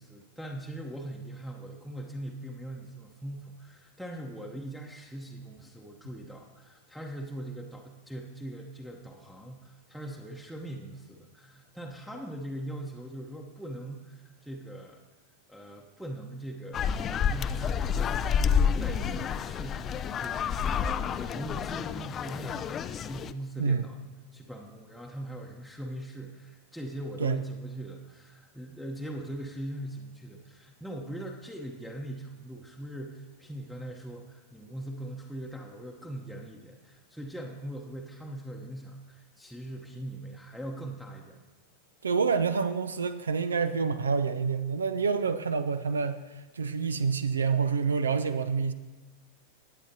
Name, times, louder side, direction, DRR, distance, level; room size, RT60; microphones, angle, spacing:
voice 1, 0.0-15.0 15.5-19.8 20.2-24.0 24.3-41.4, right 1 dB, ahead, 0 dB, 0.9 m, -41 dB
sound 1, 16.7-23.3, left 7 dB, 25° left, 0.4 m, -29 dB
voice 2, 42.0-46.2 46.5-48.7, right 5 dB, 70° right, 12 dB, 0.5 m, -27 dB
19.0 x 8.5 x 2.8 m, 1.4 s
figure-of-eight pair, 90°, 0 cm